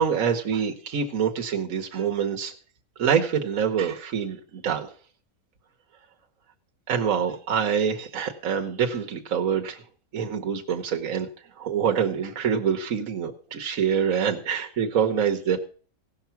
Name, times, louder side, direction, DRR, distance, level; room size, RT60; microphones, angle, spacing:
voice 1, 0.0-2.5 3.0-4.9 6.9-9.8 10.1-11.3 11.6-15.6, right 7 dB, 65° right, 3 dB, 1.5 m, -25 dB
17.0 x 6.0 x 5.7 m, 0.42 s
omnidirectional pair, 1.5 m